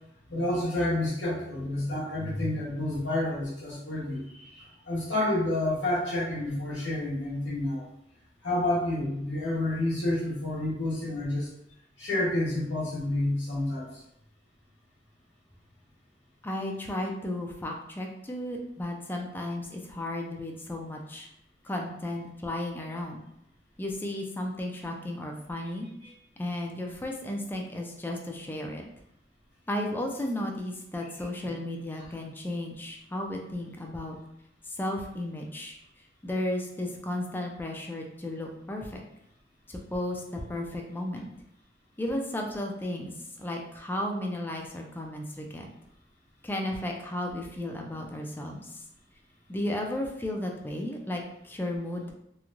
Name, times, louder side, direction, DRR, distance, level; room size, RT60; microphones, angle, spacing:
voice 1, 0.3-7.8 8.4-11.5 12.0-13.9 26.0-26.1, left 1 dB, 85° left, -7 dB, 1.0 m, -29 dB
voice 2, 16.4-21.3 21.6-23.2 23.8-25.9 26.4-28.9 29.7-34.2 34.7-35.8 36.2-39.0 39.7-41.3 42.0-43.1 43.4-45.7 46.4-48.8 49.5-52.1, left 1 dB, 10° left, 1 dB, 0.3 m, -34 dB
3.0 x 2.2 x 2.5 m, 0.76 s
head